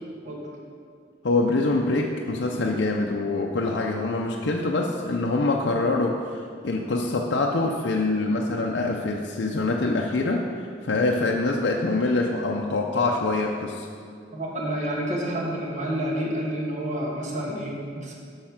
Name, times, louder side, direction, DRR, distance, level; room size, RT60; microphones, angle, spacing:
voice 1, 1.2-13.9, left 2 dB, 75° left, 0 dB, 0.6 m, -25 dB
voice 2, 14.3-18.1, right 1 dB, 40° right, -2 dB, 1.3 m, -29 dB
6.5 x 6.4 x 5.8 m, 2.2 s
head